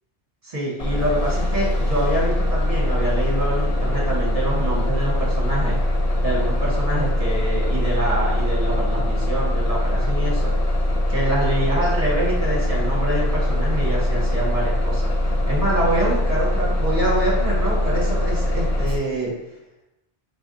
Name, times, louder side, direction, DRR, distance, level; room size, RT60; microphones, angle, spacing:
voice 1, 0.4-5.8 6.2-10.5 11.1-15.1 15.5-19.3, right 1 dB, 35° right, -5 dB, 1.5 m, -26 dB
Bus, 0.8-19.0, left 1 dB, 40° left, 0.7 m, -22 dB
4.6 x 4.2 x 2.7 m, 0.91 s
omnidirectional pair, 1.0 m